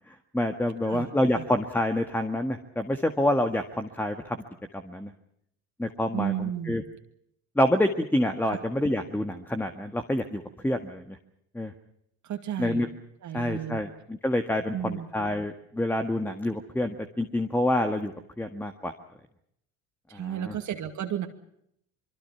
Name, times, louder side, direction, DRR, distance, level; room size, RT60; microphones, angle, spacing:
voice 1, 0.3-4.4 4.7-5.1 5.8-6.8 7.6-11.2 11.5-11.7 12.6-12.9 13.3-18.9 20.1-20.5, left 1 dB, 5° left, 7 dB, 1.8 m, -27 dB
voice 2, 6.1-6.8 8.5-8.6 12.2-12.9 13.2-13.8 14.7-15.1 20.1-21.3, right 10 dB, 50° right, 5 dB, 2.4 m, -33 dB
25.0 x 23.5 x 5.9 m, 0.73 s
supercardioid pair, 80°, 37 cm